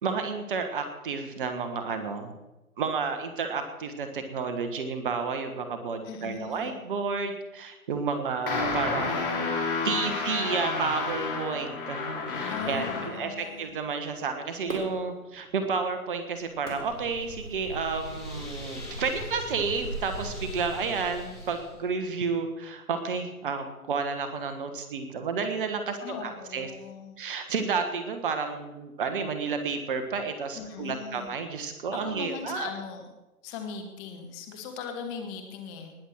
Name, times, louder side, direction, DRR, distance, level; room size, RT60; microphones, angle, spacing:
voice 1, 0.0-2.3 2.8-9.5 9.8-26.7 27.2-32.7, right 5 dB, 35° right, 7 dB, 1.4 m, -31 dB
voice 2, 6.0-6.8 12.5-13.7 26.0-27.2 30.6-31.3 31.9-33.0 33.4-36.0, left 6 dB, 20° left, 5 dB, 1.9 m, -39 dB
sound 1, 8.5-13.3, left 4 dB, 35° left, 3.1 m, -30 dB
Fireworks, 14.7-18.0 18.6-18.7, right 2 dB, 70° right, 4.2 m, -43 dB
sound 2, 16.4-21.8, equal, 5° right, 0.4 m, -39 dB
19.5 x 7.3 x 6.2 m, 1.0 s
figure-of-eight pair, 140°, 44 cm